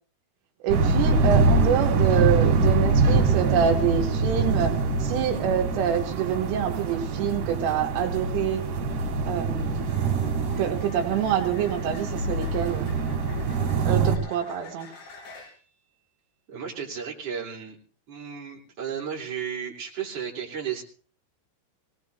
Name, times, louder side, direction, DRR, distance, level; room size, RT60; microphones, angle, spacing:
voice 1, 0.6-8.6 9.3-9.9 10.6-12.9 13.8-14.9, right 8 dB, 85° right, 2 dB, 3.9 m, -26 dB
sound 1, 0.7-14.2, right 4 dB, 60° right, 4.1 m, -24 dB
sound 2, 7.2-7.4 9.7-15.7 19.4-19.6, left 3 dB, 65° left, 7.9 m, -48 dB
voice 2, 16.5-17.8 18.1-20.8, right 7 dB, 35° right, -3 dB, 3.5 m, -34 dB
25.0 x 18.5 x 2.6 m, 0.42 s
omnidirectional pair, 5.9 m